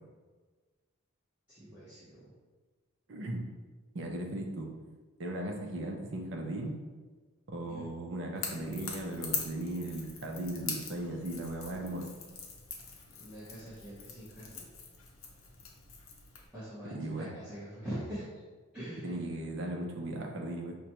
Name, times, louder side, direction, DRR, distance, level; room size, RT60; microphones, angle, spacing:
voice 1, 1.5-2.4 7.7-7.9 13.2-14.7 16.5-18.2 18.7-19.3, right 1 dB, 5° right, -13 dB, 0.9 m, -43 dB
voice 2, 3.1-3.4 3.9-4.7 5.2-6.8 7.5-12.1 16.9-17.3 19.0-20.8, right 1 dB, 55° right, 1 dB, 0.5 m, -37 dB
Crackle / Crack, 8.4-16.5, left 5 dB, 65° left, 0.6 m, -42 dB
5.0 x 2.2 x 2.9 m, 1.3 s
head